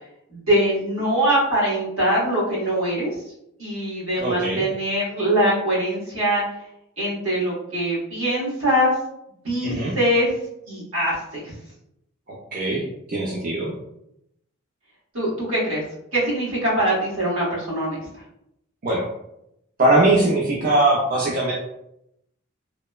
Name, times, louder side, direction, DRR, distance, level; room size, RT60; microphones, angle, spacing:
voice 1, 0.3-3.1 3.6-6.4 7.0-8.9 9.4-10.3 10.7-11.5 15.1-15.8 16.1-18.0, right 1 dB, 80° right, -6 dB, 1.3 m, -22 dB
voice 2, 4.2-4.6 9.6-9.9 12.5-12.8 13.1-13.7 18.8-19.0 19.8-21.5, right 2 dB, 45° right, -4 dB, 0.4 m, -20 dB
3.0 x 2.0 x 2.2 m, 0.80 s
head